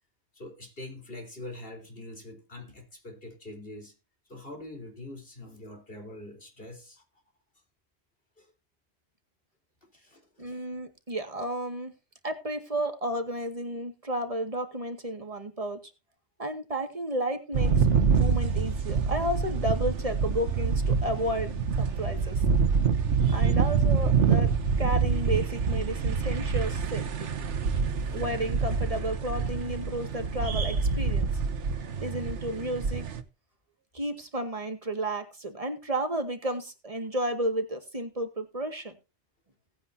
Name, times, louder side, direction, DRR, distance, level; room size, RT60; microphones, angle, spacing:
voice 1, 0.3-3.9 4.3-7.0 8.4-8.5 9.8-10.6, left 1 dB, 55° left, 4.2 m, -44 dB
voice 2, 10.4-11.9 12.2-15.8 16.4-22.4 23.3-24.5 24.8-27.3 28.1-31.3 32.0-33.1 33.9-39.0, right 1 dB, 30° right, 2.1 m, -32 dB
sound 1, 17.5-33.2, right 5 dB, 85° right, 1.4 m, -26 dB
18.0 x 9.3 x 2.8 m
omnidirectional pair, 1.2 m